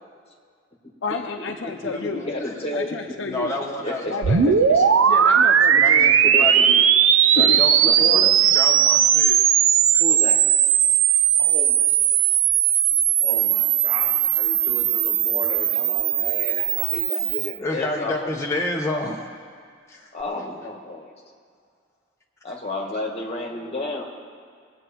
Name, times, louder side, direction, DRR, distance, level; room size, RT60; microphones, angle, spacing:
voice 1, 1.0-2.2 2.7-3.5 4.1-4.5 5.1-6.2 7.3-7.6, left 3 dB, 65° left, 3 dB, 0.7 m, -30 dB
voice 2, 2.0-3.0 3.8-4.1 4.7-4.8 6.2-6.8 7.8-8.3 10.0-10.4 11.4-12.2 13.2-18.3 20.1-21.1 22.4-24.0, left 2 dB, 30° left, 0 dB, 1.9 m, -32 dB
voice 3, 3.3-4.4 5.7-6.1 6.4-6.6 7.3-7.7 8.1-9.4 9.9-10.0 17.6-19.3 19.9-20.1, left 1 dB, 15° left, -2 dB, 0.9 m, -29 dB
sound 1, 4.2-17.5, right 9 dB, 80° right, 0.6 m, -18 dB
22.0 x 8.1 x 4.5 m, 2.1 s
head